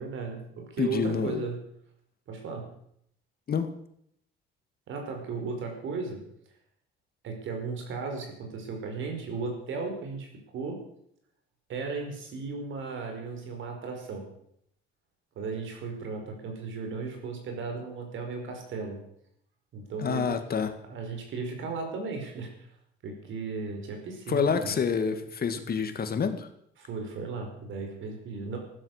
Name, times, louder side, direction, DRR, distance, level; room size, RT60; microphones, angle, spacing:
voice 1, 0.0-1.6 2.3-2.7 4.9-6.2 7.2-10.8 11.7-14.2 15.4-19.0 19.7-20.4 20.9-22.7 23.0-24.8 26.8-28.6, right 4 dB, 75° right, 3 dB, 5.1 m, -35 dB
voice 2, 0.8-1.4 3.5-3.7 20.0-20.7 24.3-26.5, left 6 dB, 50° left, 9 dB, 2.0 m, -28 dB
15.0 x 12.5 x 6.6 m, 0.72 s
cardioid pair, 90°, 20 cm